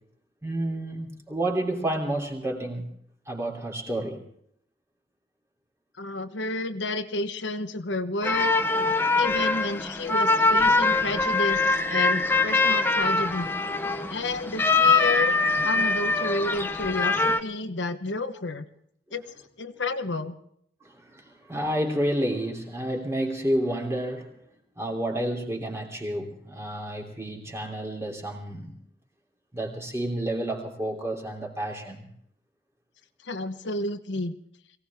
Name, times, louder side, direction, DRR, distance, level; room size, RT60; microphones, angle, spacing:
voice 1, 0.4-2.9 3.3-4.2 15.4-15.5 20.8-24.4 24.8-28.8 29.5-32.1, right 1 dB, 15° right, 0 dB, 3.1 m, -30 dB
voice 2, 6.0-8.5 9.1-13.5 14.1-15.4 15.6-18.7 19.1-19.2 19.6-20.3 33.2-34.3, left 2 dB, 80° left, 8 dB, 1.2 m, -30 dB
sound 1, 8.2-17.4, left 3 dB, 10° left, 0.8 m, -23 dB
23.0 x 17.5 x 3.6 m, 0.68 s
head